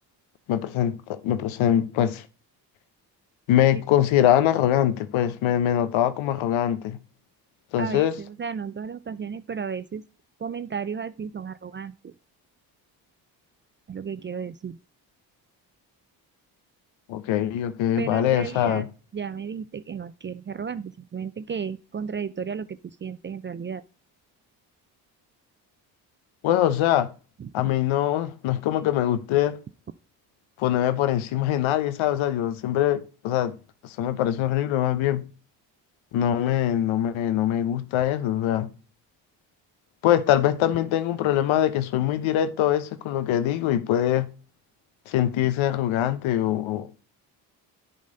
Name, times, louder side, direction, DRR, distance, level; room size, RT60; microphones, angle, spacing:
voice 1, 0.5-2.2 3.5-7.0 7.7-8.2 17.1-18.9 26.4-27.1 27.5-29.6 30.6-33.5 33.8-35.2 36.1-38.7 40.0-44.3 45.1-46.9, left 11 dB, 70° left, 0.9 m, -23 dB
voice 2, 8.4-10.0 10.4-11.9 13.9-14.8 18.0-18.8 19.1-22.7 23.0-23.8, right 6 dB, 25° right, 0.4 m, -33 dB
10.5 x 4.2 x 3.8 m
hypercardioid pair, 50°, 49 cm